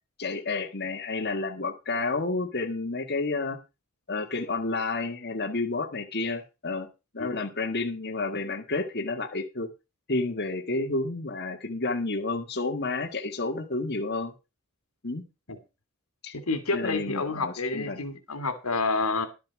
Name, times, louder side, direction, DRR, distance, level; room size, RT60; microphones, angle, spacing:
voice 1, 0.2-3.6 4.1-6.9 7.1-9.7 10.1-14.3 15.0-15.2 16.2-16.4 16.7-18.0, left 3 dB, 50° left, 1.9 m, -30 dB
voice 2, 16.3-19.3, left 3 dB, 85° left, 2.7 m, -29 dB
12.5 x 7.4 x 6.0 m
head